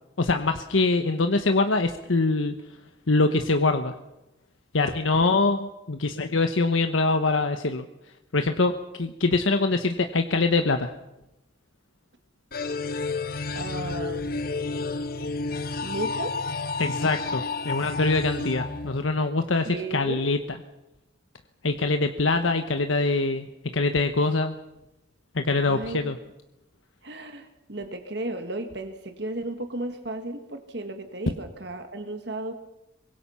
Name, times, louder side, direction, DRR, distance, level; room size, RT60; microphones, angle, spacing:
voice 1, 0.2-2.5 3.1-3.9 4.7-7.9 8.3-8.7 9.0-10.9 16.8-20.6 21.6-24.6 25.3-26.2, left 3 dB, 85° left, 7 dB, 1.1 m, -24 dB
sound 1, 12.5-19.5, left 3 dB, 50° left, 1.0 m, -31 dB
voice 2, 13.5-14.4 15.8-16.4 19.7-20.3 25.6-26.1 27.0-32.5, right 2 dB, 60° right, 7 dB, 1.7 m, -34 dB
24.5 x 21.5 x 5.7 m, 0.92 s
head